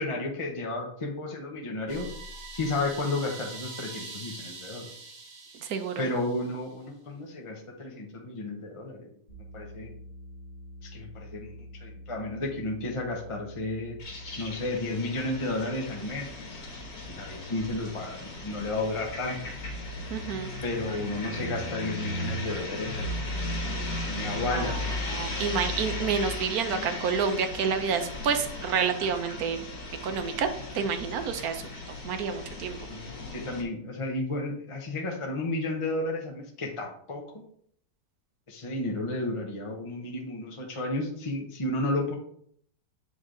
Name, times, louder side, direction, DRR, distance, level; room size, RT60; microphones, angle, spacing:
voice 1, 0.0-2.1 2.5-4.9 6.0-9.1 9.5-9.9 10.8-14.0 14.4-16.6 17.0-19.4 20.6-23.5 24.1-24.8 32.9-37.2 38.5-42.2, left 2 dB, 30° left, 0 dB, 0.5 m, -32 dB
sound 1, 1.9-6.7, right 3 dB, 85° right, 1.8 m, -43 dB
voice 2, 5.6-6.0 20.1-20.5 24.4-29.7 30.0-30.5 30.7-32.9, right 6 dB, 65° right, 8 dB, 1.1 m, -29 dB
sound 2, 9.3-14.6, equal, 45° left, 1.6 m, -46 dB
sound 3, 14.0-33.6, left 2 dB, 75° left, 2.0 m, -36 dB
8.2 x 3.3 x 3.8 m, 0.65 s
omnidirectional pair, 1.9 m